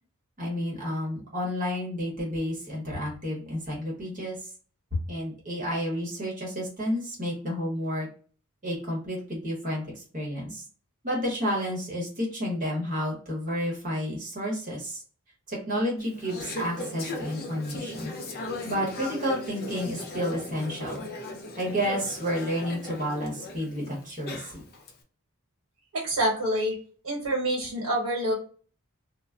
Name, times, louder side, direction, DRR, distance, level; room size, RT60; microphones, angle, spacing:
voice 1, 0.4-4.4 4.9-8.1 8.6-9.9 10.1-10.6 11.0-15.0 15.5-18.1 18.6-21.1 21.6-24.6, equal, 35° right, -3 dB, 0.9 m, -31 dB
Conversation / Chatter, 16.0-24.9, left 2 dB, 45° left, 0.5 m, -38 dB
voice 2, 25.9-26.8 27.0-28.3, right 1 dB, 85° right, -3 dB, 1.0 m, -27 dB
2.2 x 2.0 x 3.6 m, 0.42 s
head